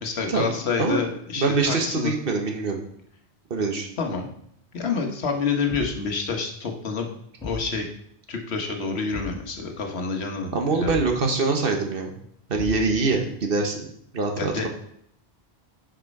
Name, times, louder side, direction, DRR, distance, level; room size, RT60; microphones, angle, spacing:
voice 1, 0.0-2.1 4.0-4.3 4.7-7.1 7.4-7.9 8.3-10.9 14.3-14.7, left 5 dB, 75° left, 3 dB, 1.4 m, -28 dB
voice 2, 1.4-2.8 3.5-3.9 10.5-12.1 12.5-13.9 14.1-14.7, right 3 dB, 60° right, 3 dB, 1.2 m, -24 dB
Thump thud, 5.7-6.1 7.4-7.7 9.1-9.5 10.8-11.2 12.5-13.1, left 3 dB, 5° left, 1.9 m, -35 dB
6.3 x 5.2 x 5.2 m, 0.71 s
omnidirectional pair, 1.1 m